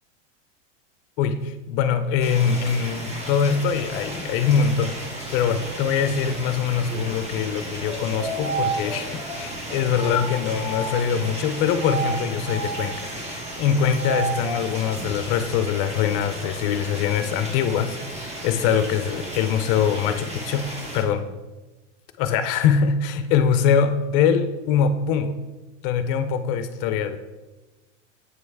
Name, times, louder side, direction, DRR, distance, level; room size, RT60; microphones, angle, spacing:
voice 1, 1.2-13.0 13.2-20.7 20.9-21.2 22.2-25.3 25.8-27.2, left 7 dB, 50° left, 10 dB, 0.5 m, -23 dB
sound 1, 2.2-21.0, right 1 dB, 15° right, 1.1 m, -35 dB
sound 2, 7.8-11.2 11.7-14.7, right 3 dB, 75° right, 1.9 m, -31 dB
7.8 x 3.1 x 4.6 m, 1.1 s
supercardioid pair, 120°, 37 cm